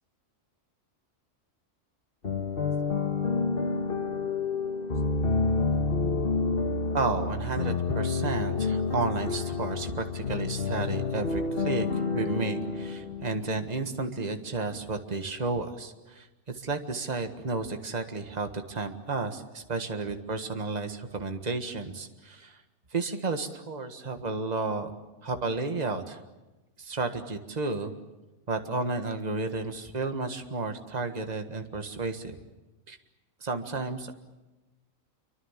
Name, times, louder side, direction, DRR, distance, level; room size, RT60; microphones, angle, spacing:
sound 1, 2.2-14.0, left 4 dB, 45° left, 1.7 m, -29 dB
voice 1, 6.9-11.9 12.1-22.6 22.9-24.9 25.2-26.2 26.8-27.9 28.5-32.4 32.9-33.0 33.4-34.1, right 3 dB, 35° right, 6 dB, 1.7 m, -32 dB
27.5 x 24.5 x 7.4 m, 1.1 s
omnidirectional pair, 1.3 m